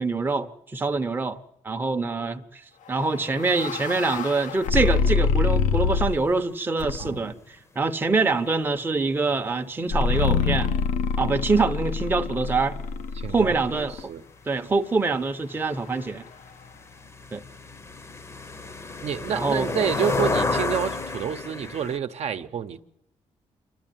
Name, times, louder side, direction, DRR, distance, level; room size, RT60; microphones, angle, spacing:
voice 1, 0.0-1.4 1.6-2.6 2.9-10.7 11.2-12.8 13.3-13.9 14.5-16.3 17.3-17.4 19.3-19.7, right 3 dB, 15° right, 0.7 m, -25 dB
sound 1, 3.0-6.3 6.8-7.3 9.9-14.0, left 5 dB, 80° left, 0.8 m, -26 dB
voice 2, 13.2-14.2 19.0-22.8, right 8 dB, 55° right, 0.8 m, -29 dB
sound 2, 14.0-14.1 14.3-22.0, left 3 dB, 20° left, 0.8 m, -31 dB
28.0 x 12.0 x 9.0 m
cardioid pair, 140°, 13 cm